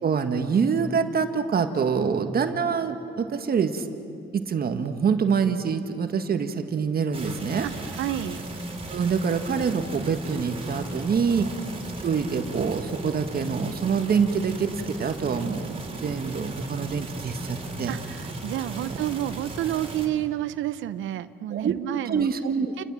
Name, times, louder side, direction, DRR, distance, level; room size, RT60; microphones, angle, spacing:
voice 1, 0.0-3.9 4.3-7.7 8.9-11.5 12.0-17.9 18.9-19.0 21.5-21.7 22.1-22.8, right 6 dB, 50° right, 7 dB, 1.6 m, -25 dB
sound 1, 7.1-20.1, right 2 dB, 30° right, 3.8 m, -36 dB
voice 2, 7.6-8.4 11.4-11.5 17.9-22.3 22.8-22.9, right 13 dB, 80° right, 14 dB, 0.8 m, -30 dB
29.5 x 20.5 x 7.5 m, 2.6 s
cardioid pair, 90°, 20 cm